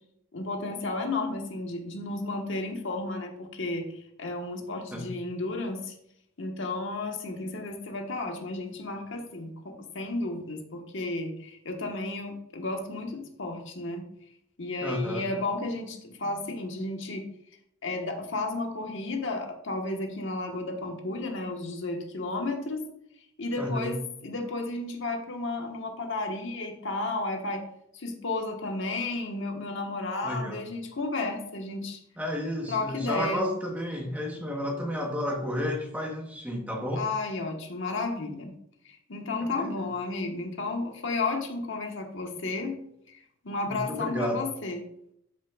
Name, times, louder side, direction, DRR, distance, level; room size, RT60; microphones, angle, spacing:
voice 1, 0.3-5.9 6.4-14.0 14.6-17.2 17.8-22.8 23.4-27.7 27.9-32.0 32.7-33.5 36.9-38.5 38.8-42.8 43.1-44.8, left 2 dB, 60° left, 3 dB, 1.3 m, -33 dB
voice 2, 14.8-15.2 23.6-23.9 30.2-30.6 32.2-37.1 39.4-39.8 43.7-44.4, equal, 5° right, 1 dB, 1.1 m, -31 dB
13.0 x 6.0 x 2.4 m, 0.73 s
head